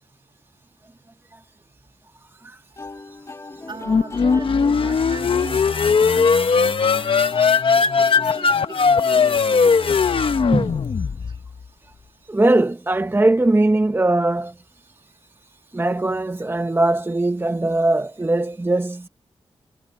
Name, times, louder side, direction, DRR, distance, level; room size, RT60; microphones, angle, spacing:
sound 1, 2.8-10.7, left 2 dB, 30° left, 1.7 m, -40 dB
voice 1, 3.7-7.4 8.0-8.8 9.0-10.0, right 4 dB, 50° right, 2.3 m, -38 dB
sound 2, 3.9-11.5, left 5 dB, 60° left, 1.2 m, -18 dB
voice 2, 12.3-14.5 15.7-19.1, right 2 dB, 20° right, 1.0 m, -20 dB
cardioid pair, 55°, 10 cm